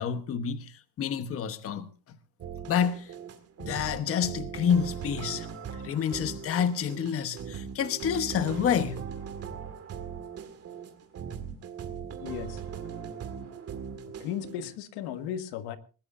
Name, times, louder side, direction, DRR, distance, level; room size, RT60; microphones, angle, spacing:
voice 1, 0.0-1.9 2.7-3.1 3.6-5.5 5.8-9.0, left 8 dB, 35° left, 1.1 m, -28 dB
sound 1, 2.4-14.7, right 7 dB, 40° right, 2.1 m, -39 dB
voice 2, 12.2-12.6 14.1-15.8, left 9 dB, 85° left, 1.7 m, -36 dB
20.0 x 19.5 x 2.6 m
cardioid pair, 165°, 38 cm